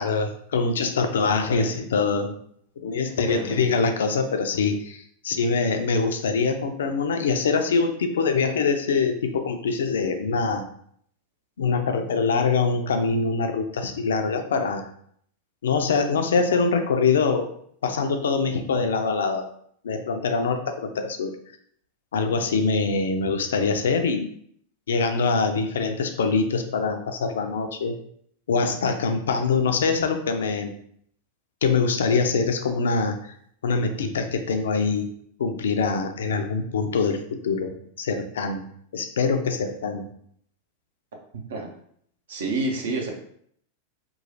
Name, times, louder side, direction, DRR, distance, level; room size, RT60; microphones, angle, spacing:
voice 1, 0.0-2.3 2.8-10.6 11.6-14.8 15.6-17.5 17.8-19.5 19.8-21.3 22.1-24.3 24.9-28.0 28.5-30.7 31.6-33.3 33.6-35.1 35.4-37.7 38.0-38.6 38.9-40.1, left 4 dB, 65° left, 7 dB, 0.3 m, -24 dB
voice 2, 1.3-1.7 3.2-3.6 41.5-41.7 42.3-43.1, right 3 dB, 60° right, 1 dB, 0.6 m, -29 dB
3.0 x 2.3 x 2.6 m, 0.64 s
figure-of-eight pair, 90°, 0 cm